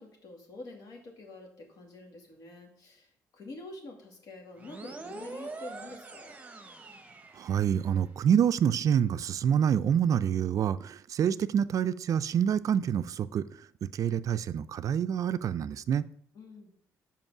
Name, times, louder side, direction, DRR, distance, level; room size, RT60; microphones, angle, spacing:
voice 1, 0.0-6.4 16.3-16.7, left 2 dB, 65° left, 2 dB, 2.1 m, -47 dB
sound 1, 4.6-8.1, right 3 dB, 20° right, 1.0 m, -44 dB
voice 2, 7.4-13.4 13.8-16.0, right 8 dB, 55° right, 15 dB, 0.4 m, -27 dB
5.3 x 5.2 x 6.0 m, 0.64 s
supercardioid pair, 70°, 7 cm